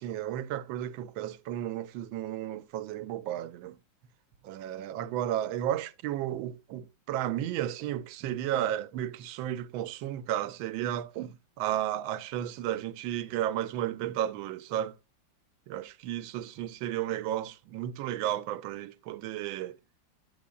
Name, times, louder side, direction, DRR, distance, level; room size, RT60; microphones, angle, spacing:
voice 1, 0.0-3.8 4.4-15.0 15.7-19.8, right 11 dB, 90° right, 1.4 m, -33 dB
8.4 x 8.2 x 2.2 m
omnidirectional pair, 2.1 m